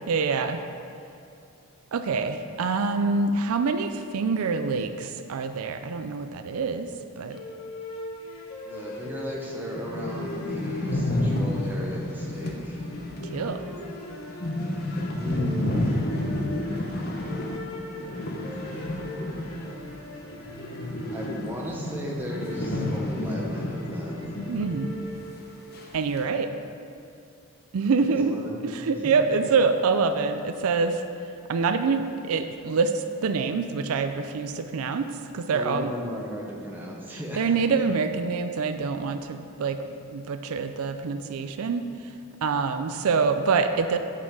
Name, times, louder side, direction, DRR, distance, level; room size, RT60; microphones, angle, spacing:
voice 1, 0.1-0.6 1.9-6.9 7.2-7.4 13.3-13.6 24.5-24.9 25.9-26.5 27.7-31.0 31.5-35.9 37.3-39.8 40.1-41.8 42.4-44.0, right 4 dB, 85° right, 8 dB, 0.4 m, -26 dB
sound 1, 7.3-25.8, left 2 dB, 70° left, 1.2 m, -41 dB
voice 2, 8.6-12.9 15.2-16.1 21.1-24.4 28.0-28.7 28.9-29.1 35.5-37.5, equal, 10° right, -3 dB, 1.0 m, -35 dB
sound 2, 9.1-9.2 9.5-9.6 9.8-20.0 20.2-24.7 25.0-25.1 25.7-26.2, left 1 dB, 45° left, 0.8 m, -30 dB
8.6 x 5.5 x 4.8 m, 2.6 s
head